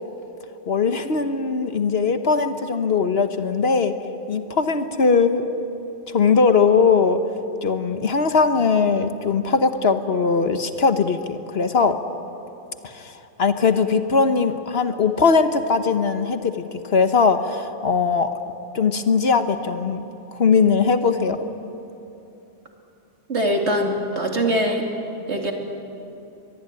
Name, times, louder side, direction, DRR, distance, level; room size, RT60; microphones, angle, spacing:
voice 1, 0.7-3.9 4.3-5.6 6.1-7.2 7.6-12.0 12.8-18.3 18.7-20.0 20.3-21.4, left 5 dB, 55° left, 9 dB, 1.3 m, -20 dB
voice 2, 23.3-24.8 25.3-25.5, equal, 65° right, 2 dB, 3.0 m, -22 dB
23.5 x 22.0 x 9.6 m, 2.9 s
omnidirectional pair, 1.3 m